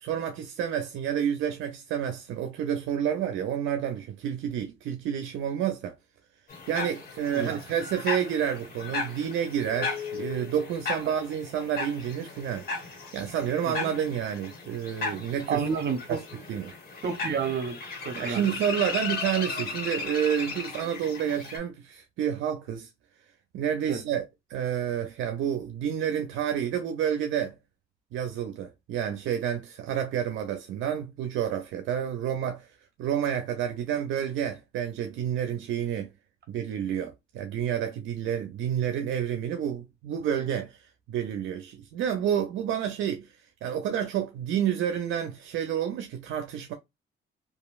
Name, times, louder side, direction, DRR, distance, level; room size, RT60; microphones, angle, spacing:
voice 1, 0.0-5.9 6.7-12.7 13.1-15.6 16.1-16.2 16.5-16.7 18.2-22.9 23.5-27.5 28.1-32.7 33.0-36.1 36.5-40.8 41.1-43.3 43.6-46.7, right 9 dB, 80° right, 0.5 m, -29 dB
sound 1, 6.5-21.6, left 4 dB, 50° left, 1.4 m, -36 dB
voice 2, 15.5-16.2 17.0-17.8 18.0-18.5 23.9-24.0, right 6 dB, 55° right, 0.8 m, -29 dB
2.9 x 2.4 x 2.3 m
cardioid pair, 90°, 20 cm